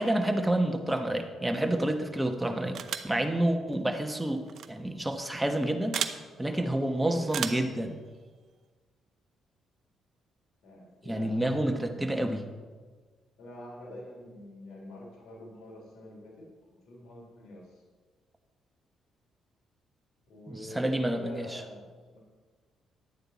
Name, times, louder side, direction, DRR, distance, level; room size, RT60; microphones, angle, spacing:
voice 1, 0.0-2.8 3.0-6.0 6.4-8.0 11.1-12.4 20.5-21.6, right 1 dB, 10° right, 5 dB, 1.1 m, -29 dB
sound 1, 2.7-3.2 4.5-4.7 5.9-6.2 7.3-7.7, right 8 dB, 65° right, 0.6 m, -33 dB
voice 2, 6.5-7.2 10.6-12.1 13.4-17.8 20.3-22.2, left 1 dB, 75° left, -4 dB, 3.0 m, -46 dB
10.5 x 9.1 x 4.1 m, 1.4 s
cardioid pair, 90°, 0 cm